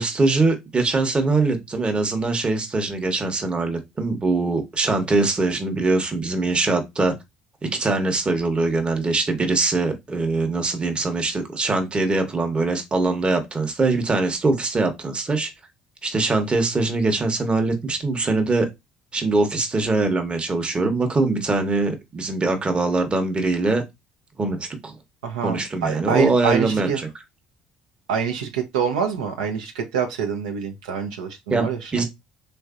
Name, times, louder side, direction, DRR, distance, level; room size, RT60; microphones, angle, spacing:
voice 1, 0.0-7.1 7.6-15.5 16.0-18.7 19.1-23.8 24.4-25.0 25.4-27.1 31.5-32.0, right 3 dB, 30° right, 0.8 m, -22 dB
voice 2, 25.2-27.0 28.1-32.0, right 7 dB, 85° right, 0.4 m, -26 dB
3.1 x 2.5 x 2.4 m
hypercardioid pair, 60°, 4 cm